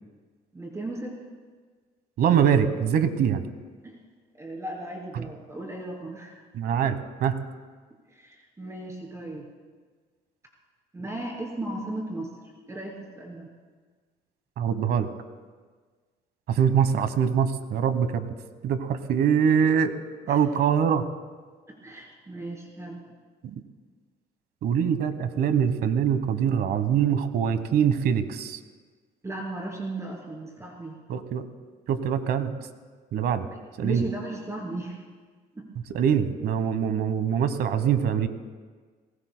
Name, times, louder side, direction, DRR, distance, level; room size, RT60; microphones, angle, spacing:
voice 1, 0.5-1.2 3.8-3.9 4.3-6.4 8.1-9.5 10.9-12.3 12.7-13.5 20.2-20.4 21.7-23.0 29.2-31.0 33.8-35.0 35.5-35.7, right 2 dB, 15° right, -2 dB, 3.0 m, -36 dB
voice 2, 2.2-3.4 5.1-5.3 6.5-7.4 14.6-15.1 16.5-18.3 18.6-19.9 20.3-21.0 23.4-23.5 24.6-28.6 31.1-31.4 31.9-32.5 33.1-33.5 33.8-34.0 35.9-38.3, right 8 dB, 65° right, 11 dB, 1.2 m, -23 dB
27.0 x 19.5 x 2.2 m, 1.5 s
cardioid pair, 110°, 17 cm